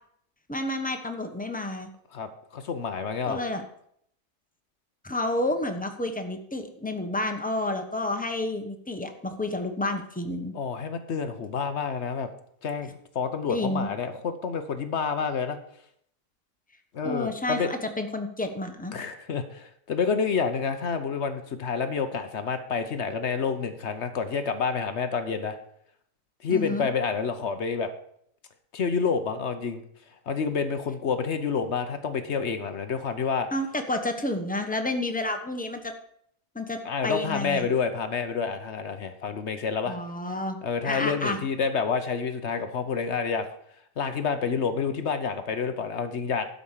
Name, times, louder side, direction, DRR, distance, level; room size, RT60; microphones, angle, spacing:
voice 1, 0.5-1.9 3.2-3.6 5.0-10.5 13.5-13.9 17.0-19.0 26.5-26.9 33.5-35.9 36.5-37.7 39.9-40.6 40.8-41.4, left 2 dB, 5° left, 6 dB, 0.8 m, -30 dB
voice 2, 2.1-3.4 10.5-12.3 12.6-15.6 16.9-17.7 18.9-25.6 26.4-27.9 28.7-29.8 30.3-33.5 36.8-40.0 40.6-43.5 44.0-46.5, left 5 dB, 50° left, 9 dB, 1.0 m, -28 dB
12.5 x 5.1 x 7.3 m, 0.69 s
omnidirectional pair, 1.7 m